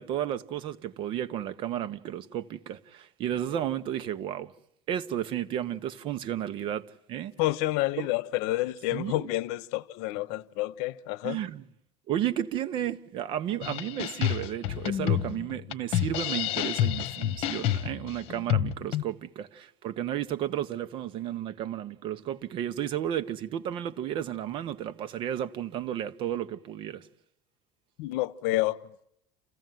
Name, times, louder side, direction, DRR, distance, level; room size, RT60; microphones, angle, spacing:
voice 1, 0.0-4.5 4.9-7.3 8.0-8.1 8.9-9.3 11.2-11.6 12.1-27.1, right 11 dB, 45° right, 1.1 m, -33 dB
voice 2, 7.4-11.4 28.0-28.8, left 17 dB, 75° left, 0.9 m, -29 dB
sound 1, 13.6-19.0, left 12 dB, 55° left, 1.3 m, -29 dB
29.0 x 15.5 x 9.3 m
cardioid pair, 155°, 12 cm